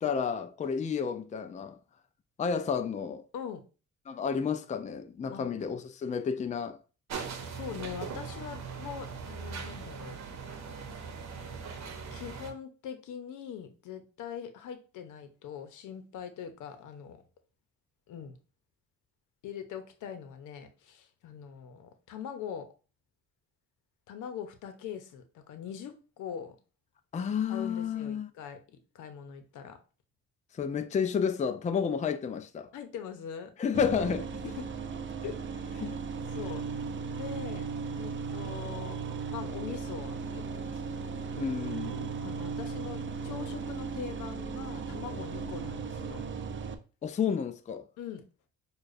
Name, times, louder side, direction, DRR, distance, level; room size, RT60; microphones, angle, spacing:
voice 1, 0.0-1.8 2.4-3.2 4.1-6.8 27.1-28.3 30.6-32.7 33.6-34.3 35.8-36.0 41.4-42.1 47.0-47.8, left 6 dB, 25° left, 0.4 m, -31 dB
sound 1, 7.1-12.5, right 5 dB, 60° right, 1.0 m, -40 dB
voice 2, 7.5-11.1 12.1-17.2 18.1-18.3 19.4-22.7 24.1-26.6 27.5-29.8 32.7-33.5 34.4-34.6 35.2-35.4 35.7-35.9 36.3-36.6 37.1-39.0 39.3-41.1 41.4-41.6 42.2-46.3 48.0-48.2, left 8 dB, 85° left, 0.8 m, -42 dB
sound 2, 33.7-46.7, right 5 dB, 40° right, 0.6 m, -37 dB
6.5 x 2.4 x 2.5 m
cardioid pair, 90°, 30 cm